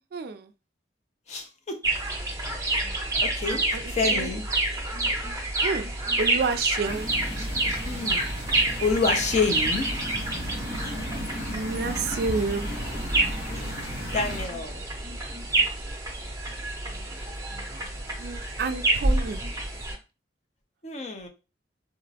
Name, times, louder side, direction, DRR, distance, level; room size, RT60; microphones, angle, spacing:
voice 1, 0.1-0.5 3.5-4.3 5.6-5.9 6.2-7.1 11.5-12.7 18.2-19.4, right 4 dB, 55° right, 0.3 m, -30 dB
voice 2, 1.3-1.8 3.2-4.4 7.9-8.3 8.8-9.9 13.5-14.8 20.8-21.3, left 4 dB, 40° left, 0.5 m, -28 dB
sound 1, 1.8-20.0, right 2 dB, 20° right, 0.6 m, -28 dB
sound 2, 6.8-14.5, equal, 55° left, 1.0 m, -35 dB
3.6 x 2.0 x 2.7 m
head